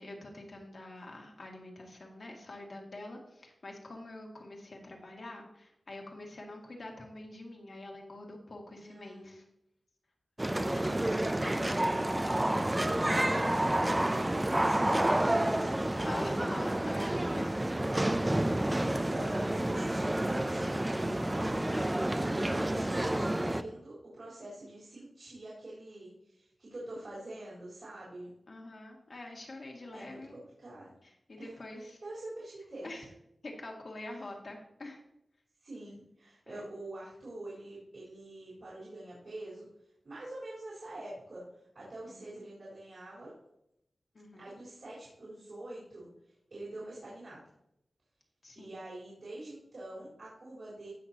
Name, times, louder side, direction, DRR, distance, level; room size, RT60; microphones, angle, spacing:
voice 1, 0.0-9.4 10.5-11.4 16.0-17.4 28.5-30.4 31.0-32.0 32.8-33.0 33.4-35.0 36.5-36.7 42.1-42.5 44.1-44.5 48.4-48.8, left 2 dB, 60° left, 0 dB, 2.0 m, -46 dB
voice 2, 8.7-9.4 11.3-11.9 12.3-16.6 17.3-17.6 18.0-28.3 29.9-30.9 31.4-31.5 32.0-32.9 34.0-34.3 35.6-39.7 40.0-43.3 44.4-47.4 48.5-50.9, right 1 dB, 60° right, -9 dB, 4.1 m, -46 dB
sound 1, 10.4-23.6, right 1 dB, 15° right, 0.5 m, -29 dB
16.0 x 6.0 x 2.9 m, 0.81 s
wide cardioid pair, 100°, 0 cm